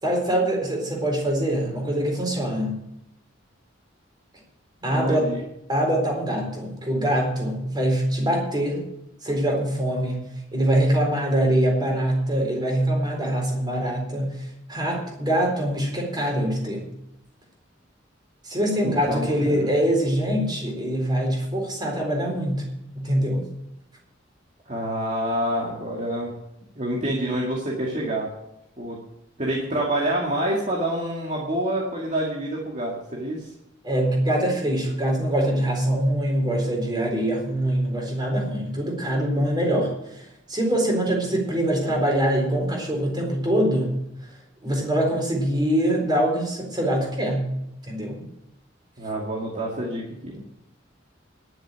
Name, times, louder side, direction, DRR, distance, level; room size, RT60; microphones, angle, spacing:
voice 1, 0.0-2.8 4.8-5.3 5.7-8.8 9.2-10.2 10.5-16.9 18.4-22.6 22.9-23.4 33.8-43.9 44.6-47.5 47.8-48.2, right 1 dB, 25° right, 0 dB, 4.0 m, -24 dB
voice 2, 4.9-5.4 18.8-19.7 24.7-26.4 26.8-28.3 28.8-29.0 29.4-33.5 49.0-50.4, right 1 dB, 40° right, -3 dB, 2.3 m, -27 dB
11.0 x 7.6 x 9.0 m, 0.84 s
head